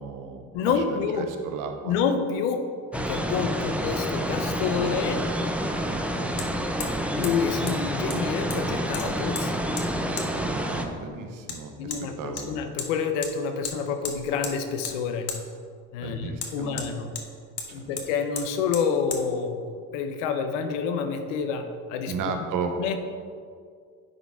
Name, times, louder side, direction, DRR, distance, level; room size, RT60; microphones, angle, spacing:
voice 1, 0.0-0.7 1.2-2.0 5.8-6.0 10.3-12.6 16.0-16.8 17.7-17.9 22.1-22.7, right 5 dB, 60° right, 5 dB, 0.9 m, -34 dB
voice 2, 0.5-1.3 1.8-2.6 2.9-5.2 7.2-9.6 11.8-15.3 15.9-17.1 17.7-19.6 19.9-22.1 22.8-23.0, left 6 dB, 90° left, 7 dB, 0.7 m, -28 dB
sound 1, 2.9-10.9, equal, 5° right, 0.5 m, -28 dB
Hammer, 6.4-6.5 6.8-7.0 7.2-7.3 7.7-7.8 8.1-8.6 8.9-9.5 9.8-9.9 10.2-10.3 11.5-11.6 11.9-12.0 12.4-12.9 13.2-13.3 13.6-13.8 14.0-14.6 14.8-15.0 15.3-15.4 16.4-17.3 17.6-17.7 18.0-18.1 18.4-18.5 18.7-18.9 19.1-19.2, left 5 dB, 40° left, 1.1 m, -34 dB
10.0 x 4.0 x 3.6 m, 2.1 s
supercardioid pair, 80°, 37 cm